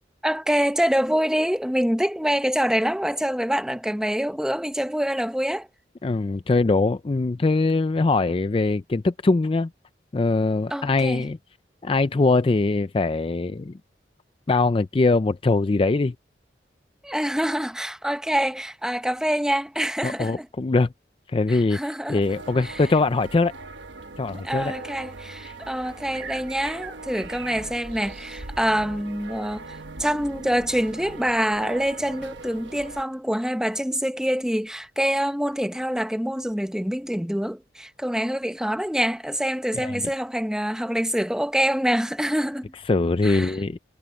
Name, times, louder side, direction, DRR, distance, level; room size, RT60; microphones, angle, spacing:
voice 1, 0.2-5.7 10.7-11.3 17.0-20.5 21.5-22.2 22.6-22.8 24.4-29.6 30.0-42.7 43.2-43.6, equal, 5° right, 1.0 m, -25 dB
voice 2, 6.0-9.7 10.1-11.4 11.8-13.8 14.5-16.1 20.0-20.9 21.3-21.8 22.1-23.5 24.2-24.7 25.5-25.6 39.7-40.0 42.9-43.8, left 3 dB, 30° left, 0.4 m, -22 dB
sound 1, 22.2-33.0, right 3 dB, 85° right, 1.3 m, -40 dB
head